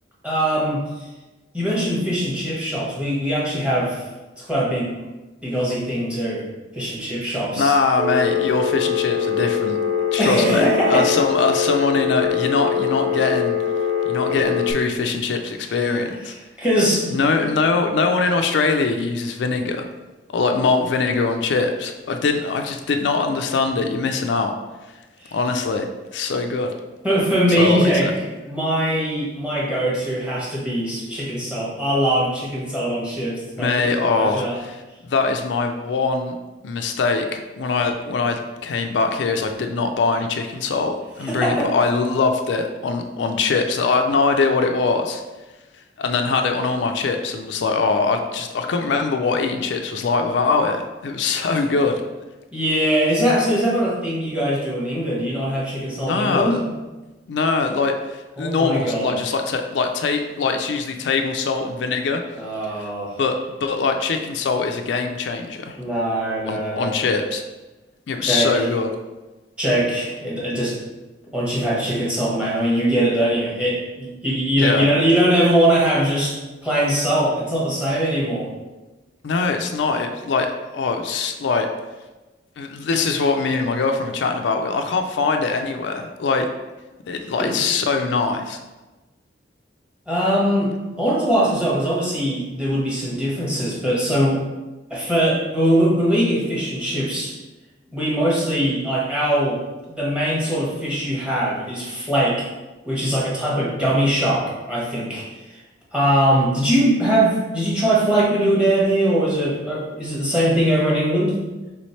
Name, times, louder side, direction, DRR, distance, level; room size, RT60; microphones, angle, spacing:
voice 1, 0.2-0.8 1.5-4.0 4.4-4.9 5.4-6.4 6.7-7.7 10.2-11.1 16.6-17.1 25.2-25.4 27.0-28.1 28.4-33.7 34.1-34.6 41.3-41.7 52.5-56.6 58.4-59.2 62.4-63.2 65.8-67.0 68.2-68.5 69.6-70.8 71.3-76.3 76.6-78.5 87.4-87.6 90.1-90.7 91.0-94.4 94.9-97.3 97.9-99.6 99.9-102.4 102.9-105.3 105.9-111.4, right 1 dB, 5° right, -6 dB, 1.1 m, -21 dB
voice 2, 7.6-9.8 10.1-13.6 14.1-16.3 17.1-19.9 20.3-24.5 25.3-25.9 26.1-26.7 27.6-28.1 33.6-34.7 35.0-36.3 36.6-45.2 46.0-52.0 56.0-56.6 57.3-58.0 58.4-62.2 63.2-65.8 66.5-67.4 68.1-68.9 74.6-74.9 79.2-81.7 82.6-86.5 87.1-88.6, left 4 dB, 75° left, 5 dB, 0.4 m, -22 dB
Telephone, 8.0-14.7, left 7 dB, 45° right, 0.4 m, -23 dB
3.4 x 3.1 x 4.3 m, 1.1 s
head